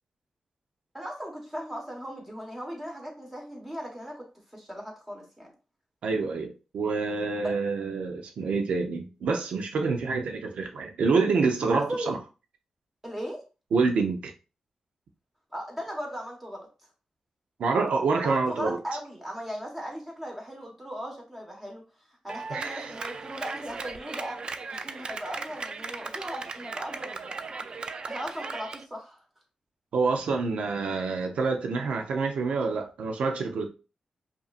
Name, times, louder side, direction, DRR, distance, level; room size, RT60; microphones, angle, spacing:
voice 1, 0.9-4.3 4.5-5.5 7.4-7.5 11.6-12.2 13.0-13.4 15.5-16.7 18.2-21.8 22.2-24.4 24.7-27.7 28.1-29.2, equal, 15° right, 1.4 m, -37 dB
voice 2, 6.0-12.2 13.7-14.3 17.6-18.8 22.5-22.9 29.9-33.7, right 4 dB, 90° right, 0.6 m, -27 dB
Clapping, 22.3-28.8, right 4 dB, 50° right, 0.4 m, -37 dB
5.3 x 2.7 x 2.5 m
cardioid pair, 90°, 2 cm